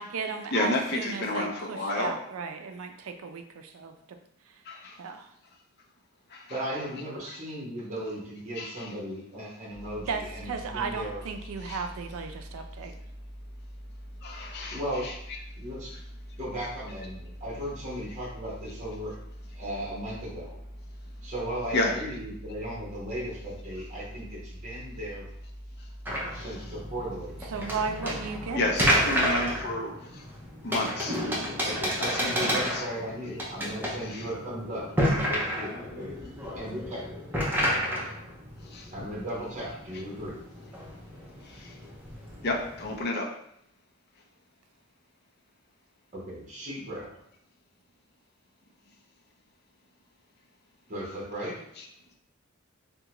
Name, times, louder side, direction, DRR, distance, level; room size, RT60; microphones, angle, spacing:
voice 1, 0.0-4.2 5.0-5.3 10.1-13.0 27.5-28.7, right 5 dB, 75° right, 6 dB, 0.4 m, -35 dB
voice 2, 0.5-2.2 4.6-5.0 6.3-6.6 7.3-7.4 8.6-8.9 11.6-11.8 14.2-15.1 21.7-21.9 25.8-25.9 26.3-26.6 28.5-30.3 30.6-31.2 32.1-32.9 34.0-34.3 38.6-38.9 41.4-41.8 42.4-43.3 51.8-51.9, left 2 dB, 50° left, 1 dB, 0.5 m, -31 dB
voice 3, 6.5-11.2 14.7-15.1 15.6-15.9 16.4-19.1 19.5-20.6 21.2-25.2 26.3-27.6 31.6-36.1 36.5-37.1 38.9-40.4 46.1-47.1 50.9-51.6, equal, 35° right, -5 dB, 1.0 m, -36 dB
sound 1, 9.7-29.6, equal, 20° left, 0.8 m, -44 dB
sound 2, 26.1-43.0, equal, 10° right, 0.5 m, -31 dB
3.6 x 2.2 x 2.9 m, 0.73 s
head